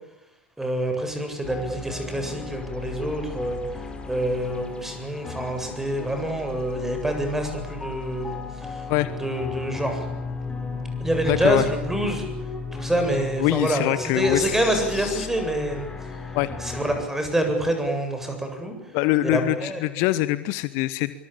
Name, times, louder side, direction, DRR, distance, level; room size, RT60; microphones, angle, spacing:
voice 1, 0.6-3.6 4.1-8.8 9.2-10.0 11.0-12.2 12.7-15.9 16.6-18.7 19.3-19.8, right 1 dB, 5° right, 5 dB, 7.9 m, -26 dB
sound 1, 1.4-17.1, left 4 dB, 15° left, 5.3 m, -35 dB
voice 2, 11.3-11.7 13.4-15.3 16.3-16.5 18.9-21.1, left 17 dB, 50° left, 15 dB, 1.1 m, -24 dB
24.5 x 23.5 x 8.7 m, 0.87 s
figure-of-eight pair, 80°, 6 cm